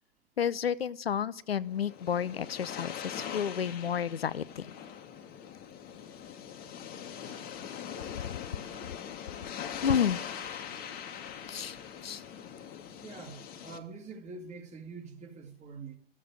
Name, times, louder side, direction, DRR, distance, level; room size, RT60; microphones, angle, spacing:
voice 1, 0.4-4.7 8.2-8.4 9.8-10.2 11.5-11.8 12.0-12.2, left 8 dB, 80° left, 17 dB, 0.6 m, -31 dB
sound 1, 1.6-13.8, left 8 dB, 30° left, 1.4 m, -42 dB
voice 2, 6.1-6.6 13.0-16.0, right 4 dB, 25° right, 3 dB, 2.2 m, -46 dB
13.0 x 7.4 x 9.6 m, 0.62 s
figure-of-eight pair, 100°, 30 cm